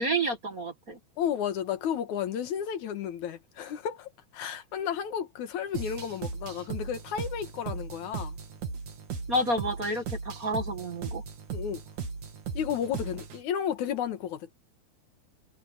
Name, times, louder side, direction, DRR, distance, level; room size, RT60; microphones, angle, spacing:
voice 1, 0.0-1.0 9.3-11.2, right 1 dB, 35° right, 1.9 m, -29 dB
voice 2, 1.2-8.4 11.5-11.8 12.5-14.5, left 9 dB, 80° left, 2.8 m, -32 dB
sound 1, 5.7-13.4, right 5 dB, 80° right, 4.0 m, -37 dB
omnidirectional pair, 3.4 m